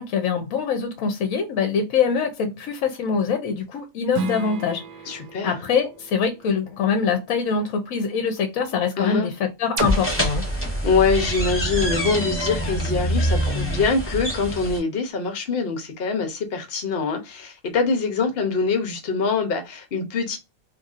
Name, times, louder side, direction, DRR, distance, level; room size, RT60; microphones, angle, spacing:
voice 1, 0.0-5.1 5.4-9.3 9.6-10.4, left 6 dB, 70° left, 1.0 m, -24 dB
Strum, 4.1-9.3, right 3 dB, 75° right, 1.0 m, -37 dB
voice 2, 5.1-5.6 9.0-9.3 10.8-20.4, left 4 dB, 50° left, 0.9 m, -24 dB
sound 1, 9.8-14.8, right 1 dB, 10° left, 0.7 m, -25 dB
sound 2, 9.8-13.6, equal, 35° right, 0.7 m, -32 dB
3.0 x 2.6 x 2.4 m
omnidirectional pair, 1.5 m